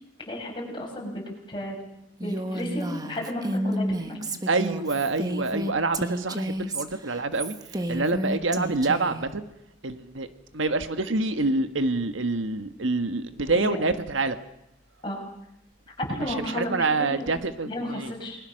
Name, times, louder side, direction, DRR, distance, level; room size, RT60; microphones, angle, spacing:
voice 1, 0.3-1.8 2.2-4.2 13.5-13.9 15.0-15.2 16.0-17.3 17.6-18.4, left 1 dB, 25° left, -1 dB, 6.6 m, -33 dB
Female speech woman speaking, 2.2-9.2, right 1 dB, 20° right, 1.3 m, -31 dB
voice 2, 4.1-7.5 7.9-9.5 9.8-10.3 10.5-14.4 16.5-18.1, right 3 dB, 85° right, 9 dB, 1.5 m, -26 dB
29.0 x 21.0 x 6.5 m, 0.80 s
head